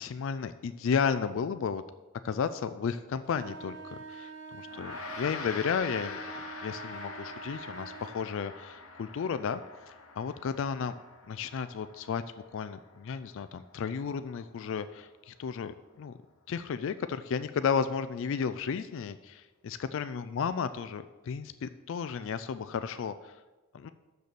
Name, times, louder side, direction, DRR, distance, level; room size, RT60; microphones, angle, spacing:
voice 1, 0.0-1.8 2.2-6.2 6.6-9.6 9.9-10.9 11.3-12.2 12.5-16.1 16.5-23.4 23.7-23.9, left 6 dB, 65° left, 11 dB, 0.3 m, -33 dB
sound 1, 3.2-8.2, right 5 dB, 60° right, 0.6 m, -45 dB
Gong, 4.7-14.3, left 4 dB, 80° left, 1.0 m, -45 dB
6.8 x 6.4 x 6.8 m, 1.2 s
head